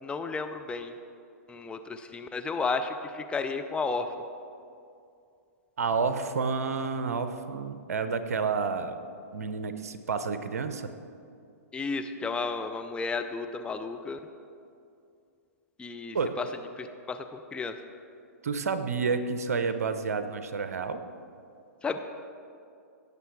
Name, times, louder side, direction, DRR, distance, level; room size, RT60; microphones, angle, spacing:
voice 1, 0.0-0.9 1.5-4.1 11.7-14.2 15.8-16.5 16.8-17.7 21.8-22.0, left 4 dB, 10° left, 7 dB, 0.6 m, -33 dB
voice 2, 5.8-9.0 9.3-10.9 16.1-16.3 18.4-21.0, right 5 dB, 75° right, 10 dB, 0.8 m, -30 dB
17.0 x 6.7 x 4.8 m, 2.5 s
hypercardioid pair, 115°, 8 cm